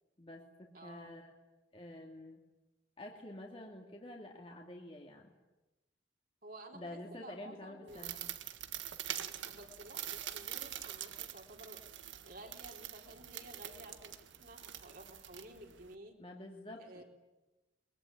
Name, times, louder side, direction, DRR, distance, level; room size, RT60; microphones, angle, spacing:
voice 1, 0.2-1.4 1.7-2.4 3.0-5.3 6.7-8.2 16.2-17.0, left 1 dB, 30° left, 0 dB, 2.5 m, -49 dB
voice 2, 0.7-1.2 6.4-8.3 9.1-16.2 16.8-17.0, right 1 dB, 50° right, 2 dB, 4.0 m, -53 dB
sound 1, 7.9-15.9, right 11 dB, 85° right, 1.7 m, -45 dB
23.0 x 22.5 x 9.9 m, 1.0 s
head